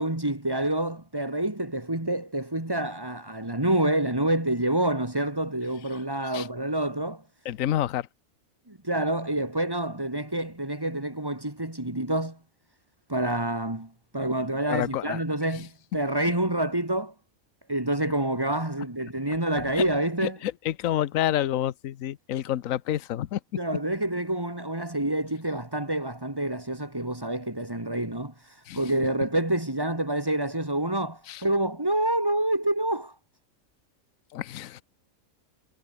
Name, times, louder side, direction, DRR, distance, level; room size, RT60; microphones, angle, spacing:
voice 1, 0.0-7.2 8.7-12.4 13.1-17.1 17.7-20.4 23.6-33.1, right 1 dB, 15° right, 2.6 m, -27 dB
voice 2, 7.4-8.1 14.7-15.2 15.5-15.7 19.7-19.8 20.2-23.4 28.7-28.8 31.3-31.4 34.3-34.8, left 12 dB, 75° left, 1.2 m, -28 dB
omnidirectional pair, 1.4 m